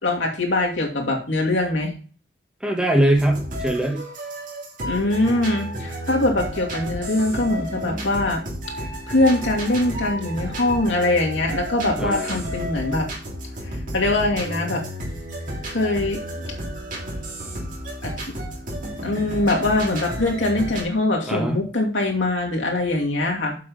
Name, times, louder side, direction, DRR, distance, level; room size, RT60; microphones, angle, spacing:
voice 1, 0.0-1.9 4.8-8.4 8.8-13.1 13.6-14.8 15.7-16.5 18.0-18.3 19.0-23.6, left 2 dB, 80° left, 0 dB, 2.5 m, -23 dB
voice 2, 2.6-4.1 12.0-12.4 21.3-21.6, right 1 dB, 5° right, 0 dB, 1.7 m, -21 dB
sound 1, 3.2-20.8, equal, 45° right, 3.4 m, -32 dB
7.5 x 6.3 x 5.5 m, 0.39 s
head